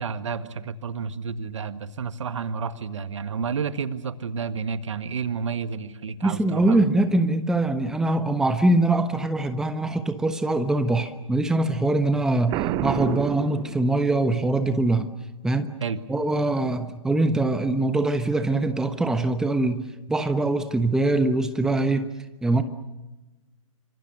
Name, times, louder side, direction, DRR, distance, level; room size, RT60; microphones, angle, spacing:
voice 1, 0.0-6.8 15.8-16.0, right 5 dB, 60° right, 11 dB, 1.8 m, -30 dB
voice 2, 6.2-15.1 15.4-15.7 16.1-22.1 22.4-22.6, right 2 dB, 5° right, 10 dB, 1.1 m, -23 dB
Boom, 12.5-14.3, right 13 dB, 20° right, 0.8 m, -29 dB
28.5 x 26.0 x 6.6 m, 1.1 s
figure-of-eight pair, 130°, 18 cm